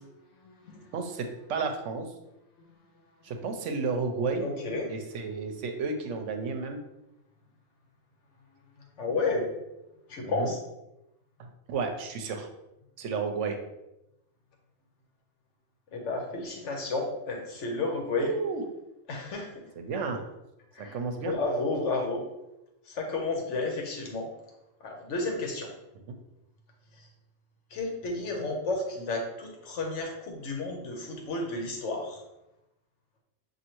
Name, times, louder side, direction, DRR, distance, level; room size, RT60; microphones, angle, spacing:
voice 1, 0.4-0.9 4.4-4.9 8.8-9.5 10.1-10.6 15.9-18.3 19.1-19.5 20.7-22.2 22.9-24.3 24.8-25.7 27.0-27.1 27.7-32.2, left 3 dB, 75° left, 1 dB, 1.2 m, -32 dB
voice 2, 0.9-2.1 3.2-4.5 4.9-6.8 10.2-10.5 11.4-12.5 13.0-13.6 18.1-18.6 19.8-20.2 20.8-21.3 26.1-26.2, right 4 dB, 75° right, 5 dB, 1.0 m, -32 dB
6.3 x 2.7 x 2.9 m, 0.92 s
omnidirectional pair, 1.3 m